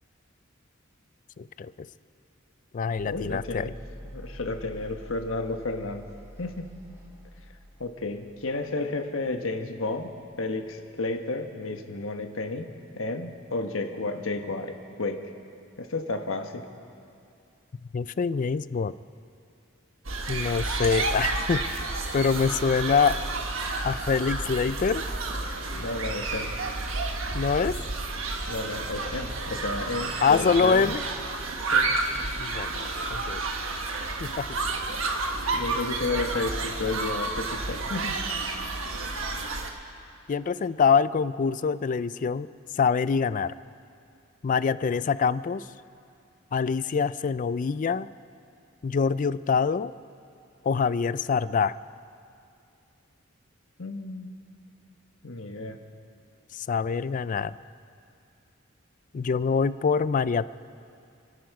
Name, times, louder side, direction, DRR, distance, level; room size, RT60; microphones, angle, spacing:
voice 1, 1.4-1.7 2.7-3.7 17.9-18.9 20.3-21.8 22.1-23.2 23.8-25.0 27.3-27.7 30.2-31.0 32.4-33.4 34.2-34.6 40.3-42.5 42.8-43.5 44.4-45.6 46.5-48.1 48.8-49.9 50.6-51.8 56.5-57.5 59.1-60.5, left 5 dB, 40° left, 16 dB, 0.4 m, -25 dB
sound 1, 2.9-11.1, equal, 15° right, 2.6 m, -47 dB
voice 2, 3.0-3.7 4.0-6.0 6.4-6.7 7.8-10.1 10.4-12.7 13.0-15.2 15.8-16.7 25.7-26.5 28.5-30.9 31.7-31.9 35.5-38.2 53.8-54.3 55.2-55.8, left 2 dB, 85° left, 5 dB, 1.3 m, -32 dB
sound 2, 20.0-39.7, right 3 dB, 80° right, 1.4 m, -30 dB
29.5 x 10.5 x 4.8 m, 2.5 s
head